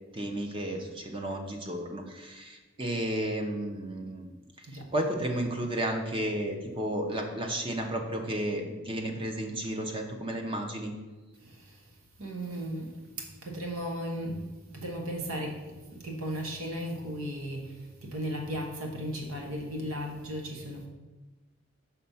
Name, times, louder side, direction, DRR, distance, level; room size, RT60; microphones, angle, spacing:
voice 1, 0.1-4.3 4.9-10.9, right 1 dB, 25° right, 3 dB, 0.7 m, -32 dB
voice 2, 11.4-11.9 12.2-14.4 14.7-20.9, equal, 80° right, 2 dB, 1.2 m, -36 dB
5.9 x 4.2 x 5.6 m, 1.2 s
head